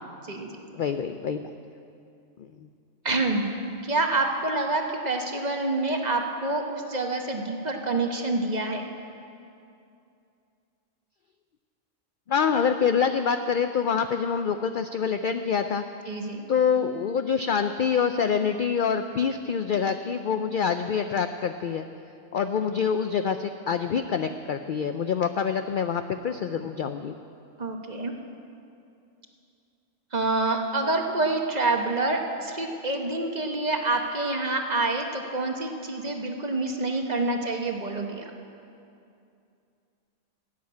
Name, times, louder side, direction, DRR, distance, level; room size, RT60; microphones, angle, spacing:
voice 1, 0.2-0.6 3.0-3.5 3.8-8.9 16.1-16.4 27.6-28.1 30.1-38.2, right 2 dB, 35° right, 3 dB, 1.0 m, -27 dB
voice 2, 0.8-1.5 2.4-2.5 12.3-15.8 16.5-21.8 22.3-27.2, left 6 dB, 70° left, 8 dB, 0.4 m, -26 dB
13.5 x 7.7 x 9.4 m, 2.6 s
omnidirectional pair, 1.4 m